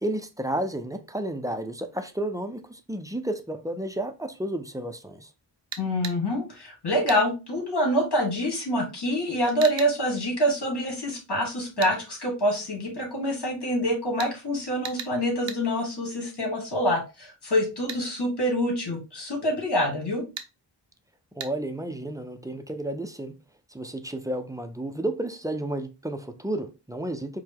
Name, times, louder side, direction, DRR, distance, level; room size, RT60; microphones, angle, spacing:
voice 1, 0.0-5.3 21.4-23.4 23.7-27.4, right 1 dB, 10° right, 0.4 m, -32 dB
sound 1, 5.7-6.2 7.1-7.2 9.6-9.9 11.8-12.0 14.2-14.3 14.8-15.1 15.5-15.6 17.9-18.0 20.4-20.5 21.4-21.5, right 7 dB, 90° right, 0.6 m, -36 dB
voice 2, 5.8-20.2, equal, 65° left, 2.1 m, -26 dB
4.7 x 2.1 x 3.5 m
wide cardioid pair, 95°, 43 cm